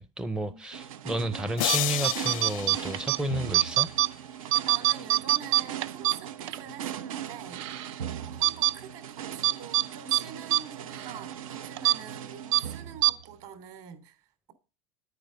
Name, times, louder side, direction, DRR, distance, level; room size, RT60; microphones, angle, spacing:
voice 1, 0.0-3.9, right 1 dB, 5° right, 0.5 m, -32 dB
sound 1, 0.7-13.5, right 9 dB, 90° right, 0.9 m, -40 dB
sound 2, 1.6-3.9, left 17 dB, 80° left, 0.5 m, -32 dB
sound 3, 1.6-1.8 2.0-3.2 3.5-4.1 4.4-6.6 7.0-7.1 7.5-7.9 8.4-8.7 9.4-9.9 10.1-10.2 10.5-10.6 10.9-11.1 11.8-12.0 12.5-12.6 13.0-13.1, right 18 dB, 60° right, 0.7 m, -24 dB
voice 2, 4.7-7.7 8.2-14.5, right 7 dB, 45° right, 3.1 m, -45 dB
10.0 x 9.2 x 6.6 m
supercardioid pair, 140°, 17 cm